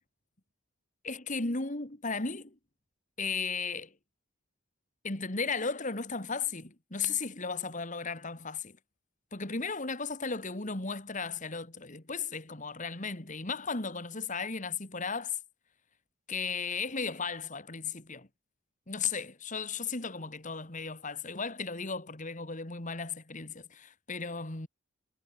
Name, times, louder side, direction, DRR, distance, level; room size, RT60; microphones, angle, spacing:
voice 1, 1.0-2.6 3.2-3.9 5.0-8.8 9.3-15.4 16.3-18.3 18.9-24.7, left 5 dB, 40° left, 2.3 m, -35 dB
head